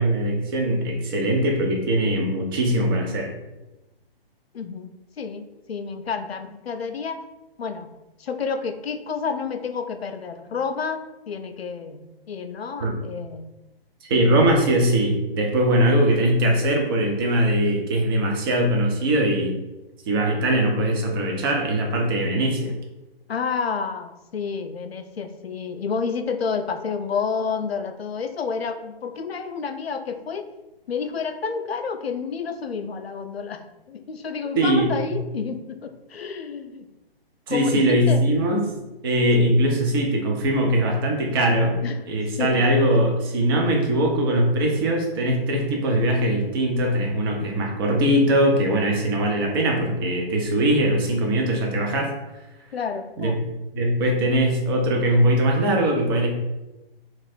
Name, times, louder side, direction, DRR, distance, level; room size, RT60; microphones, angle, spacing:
voice 1, 0.0-3.3 12.8-12.9 14.0-19.6 20.1-22.7 34.6-35.1 37.5-38.6 39.0-41.8 42.1-52.1 53.2-53.4 53.7-56.3, right 1 dB, 25° right, 1 dB, 0.5 m, -21 dB
voice 2, 4.5-4.9 5.2-7.2 7.6-7.9 8.2-13.5 23.3-30.5 30.9-33.6 33.9-36.9 37.5-38.2 39.4-39.6 41.8-42.0 42.4-42.7 52.7-53.4, left 5 dB, 80° left, 8 dB, 0.5 m, -30 dB
2.9 x 2.5 x 4.2 m, 1.0 s
figure-of-eight pair, 135°, 30 cm